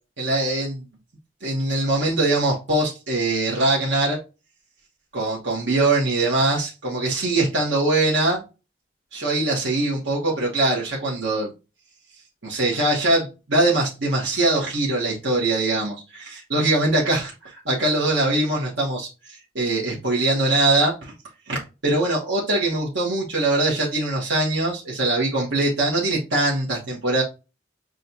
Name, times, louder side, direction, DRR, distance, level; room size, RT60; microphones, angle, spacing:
voice 1, 0.2-0.8 1.4-4.2 5.1-8.4 9.1-11.5 12.4-19.1 19.5-21.1 21.5-27.2, right 2 dB, 85° right, 1.3 m, -22 dB
6.4 x 2.4 x 2.7 m
head